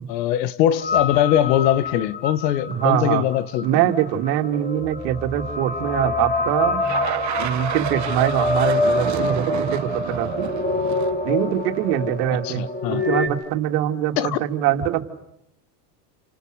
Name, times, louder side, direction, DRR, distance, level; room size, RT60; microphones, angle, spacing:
voice 1, 0.1-3.8 12.4-13.0 14.2-14.4, left 11 dB, 80° left, 1.8 m, -21 dB
sound 1, 0.8-13.3, left 3 dB, 20° left, 3.6 m, -26 dB
voice 2, 2.7-3.2 3.6-6.8 7.4-10.5 11.2-15.0, right 11 dB, 70° right, 2.9 m, -23 dB
sound 2, 6.8-12.1, right 13 dB, 35° right, 1.1 m, -31 dB
29.5 x 27.0 x 6.6 m
supercardioid pair, 120°, 49 cm